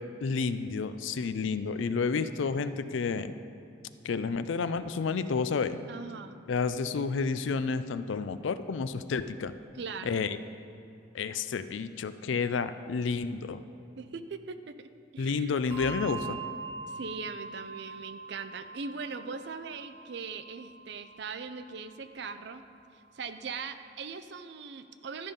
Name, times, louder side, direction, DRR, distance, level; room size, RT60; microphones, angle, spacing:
voice 1, 0.2-3.3 4.0-5.8 6.5-9.5 10.1-10.4 11.1-13.6 15.2-16.4, left 5 dB, 70° left, 12 dB, 0.4 m, -30 dB
voice 2, 5.9-6.4 9.7-10.2 14.0-14.9 15.1-15.5 16.9-22.6 22.9-25.3, right 5 dB, 60° right, 10 dB, 0.4 m, -40 dB
Bell, 15.7-22.6, right 5 dB, 35° right, 2.0 m, -43 dB
13.0 x 5.5 x 5.2 m, 2.6 s
head